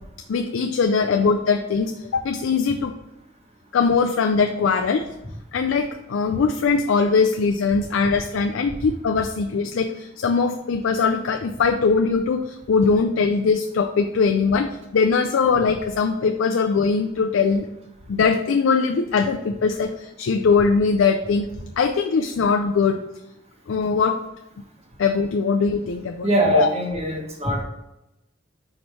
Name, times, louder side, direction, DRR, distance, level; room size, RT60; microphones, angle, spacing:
voice 1, 0.3-2.9 3.7-5.1 5.5-17.7 18.1-21.5 21.8-23.0 23.7-24.2 25.0-26.7, left 5 dB, 85° left, 5 dB, 0.4 m, -21 dB
voice 2, 26.2-27.6, right 1 dB, 35° right, 1 dB, 1.1 m, -22 dB
4.9 x 4.3 x 4.5 m, 0.91 s
head